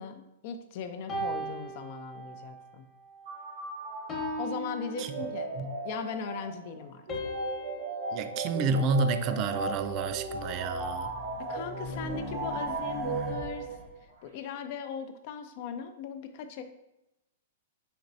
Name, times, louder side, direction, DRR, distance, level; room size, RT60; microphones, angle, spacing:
voice 1, 0.0-2.9 4.4-5.5 5.8-7.0 11.4-13.8 14.2-16.6, left 6 dB, 50° left, 0.4 m, -39 dB
sound 1, 1.1-2.6 3.1-3.4 4.1-5.8 7.1-9.5, equal, 25° left, 0.9 m, -39 dB
sound 2, 3.3-14.0, right 3 dB, 80° right, 1.0 m, -36 dB
voice 2, 8.1-11.1, right 4 dB, 40° right, 0.3 m, -29 dB
Race car auto racing, 9.7-13.9, left 2 dB, 5° right, 0.7 m, -42 dB
4.2 x 3.0 x 2.6 m
hypercardioid pair, 125°, 0 cm